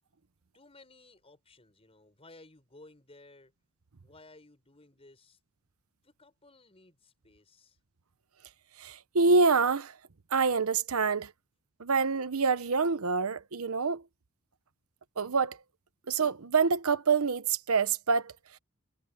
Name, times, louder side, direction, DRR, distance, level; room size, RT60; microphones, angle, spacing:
voice 1, 0.5-3.5 4.0-5.4 6.0-7.8, left 2 dB, 25° left, 5.6 m, -57 dB
voice 2, 8.8-9.9 10.3-11.3 11.8-14.0 15.2-15.6 16.1-18.3, right 4 dB, 85° right, 0.9 m, -26 dB
head